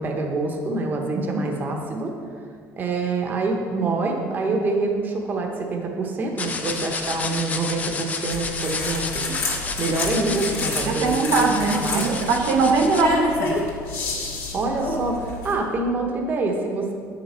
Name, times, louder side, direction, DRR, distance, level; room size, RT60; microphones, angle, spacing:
voice 1, 0.0-2.1 2.8-9.2 9.8-11.1 11.5-12.2 14.5-16.9, right 3 dB, 30° right, 2 dB, 0.9 m, -26 dB
sound 1, 6.4-13.0, left 4 dB, 25° left, 0.6 m, -31 dB
sound 2, 8.3-15.5, left 3 dB, 50° left, 1.7 m, -29 dB
voice 2, 10.9-13.6, right 4 dB, 85° right, 1 dB, 0.9 m, -21 dB
8.2 x 5.8 x 4.3 m, 2.1 s
cardioid pair, 140°, 6 cm